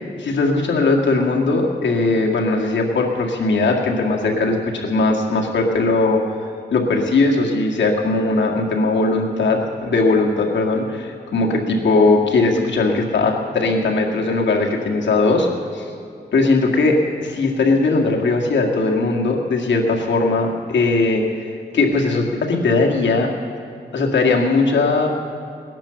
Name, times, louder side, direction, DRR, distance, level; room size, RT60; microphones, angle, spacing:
voice 1, 0.2-6.2 6.7-15.5 15.7-15.9 16.3-21.4 21.7-23.3 23.9-25.1, left 3 dB, 85° left, 0 dB, 2.0 m, -19 dB
18.0 x 10.5 x 7.0 m, 2.3 s
wide cardioid pair, 120°, 18 cm